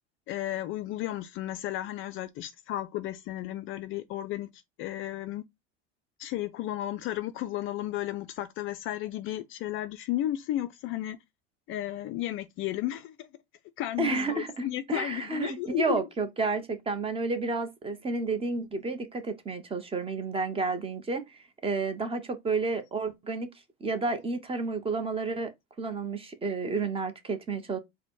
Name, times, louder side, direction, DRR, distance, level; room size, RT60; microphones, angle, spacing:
voice 1, 0.3-5.4 6.2-11.2 11.7-13.3 13.8-16.0, left 13 dB, 40° left, 0.4 m, -33 dB
voice 2, 14.0-23.5 23.8-25.5 25.8-27.8, right 3 dB, 15° right, 0.8 m, -31 dB
4.1 x 2.1 x 4.5 m
supercardioid pair, 110°, 33 cm